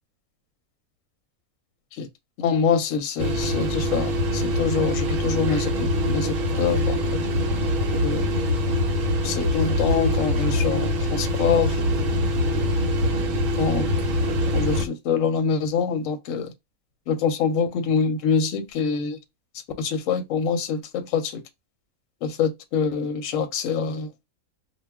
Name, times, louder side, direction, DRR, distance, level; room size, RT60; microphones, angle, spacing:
voice 1, 2.4-7.2 8.0-8.3 9.2-11.8 13.1-13.3 13.6-13.9 14.5-16.5 17.1-19.2 19.8-21.4 22.2-24.1, left 6 dB, 70° left, 0.9 m, -25 dB
sound 1, 3.2-14.9, equal, 65° right, 1.0 m, -24 dB
2.3 x 2.2 x 3.3 m
omnidirectional pair, 1.5 m